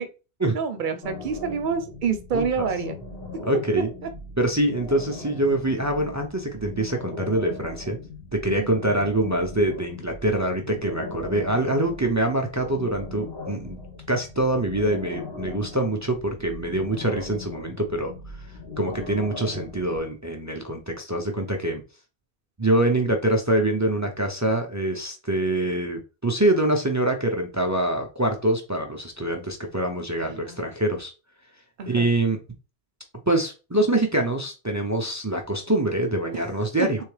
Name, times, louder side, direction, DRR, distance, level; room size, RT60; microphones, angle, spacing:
voice 1, 0.5-3.0 8.6-8.7 30.2-30.6 31.8-32.1 36.3-36.4, right 6 dB, 50° right, 7 dB, 0.7 m, -28 dB
sound 1, 1.0-20.0, left 3 dB, 65° left, 1.5 m, -39 dB
voice 2, 2.3-2.7 3.5-3.9 4.4-8.0 8.3-13.8 14.1-18.1 18.8-21.8 22.6-31.1 31.9-32.4 33.3-37.0, right 1 dB, 30° right, 3 dB, 0.3 m, -25 dB
3.5 x 3.3 x 3.2 m, 0.31 s
omnidirectional pair, 1.1 m